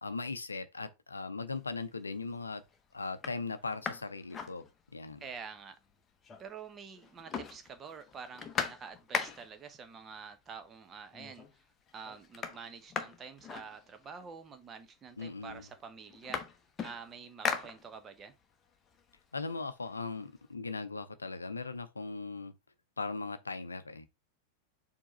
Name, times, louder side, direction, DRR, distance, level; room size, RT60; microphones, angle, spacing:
voice 1, 0.0-2.6 2.9-4.6 4.9-5.2 15.2-15.7 19.3-22.5 23.0-24.1, left 3 dB, 80° left, 0.5 m, -39 dB
sound 1, 1.9-2.2 2.7-2.8 3.1-5.2 5.5-5.6 5.8-6.7 7.0-9.7 10.6-10.7 11.1-11.6 11.9-14.3 15.1-15.2 15.5-18.3 18.7-20.4, left 6 dB, 25° left, 0.8 m, -40 dB
voice 2, 5.2-5.8 6.4-11.5 11.9-16.4 16.8-18.3, right 6 dB, 25° right, 0.8 m, -47 dB
4.6 x 2.9 x 4.0 m
figure-of-eight pair, 90°, 0 cm